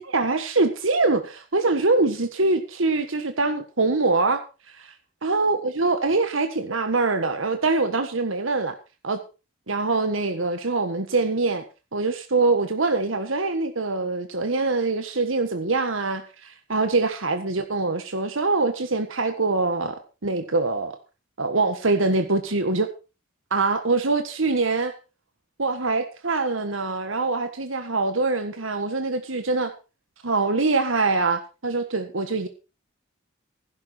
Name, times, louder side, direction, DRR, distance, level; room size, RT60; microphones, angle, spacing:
voice 1, 0.0-4.4 4.8-4.9 5.2-8.8 9.0-9.2 9.7-11.6 11.9-20.9 21.4-22.9 23.5-24.9 25.6-29.7 30.2-32.5, right 3 dB, 80° right, 1.6 m, -24 dB
15.5 x 12.0 x 4.5 m
head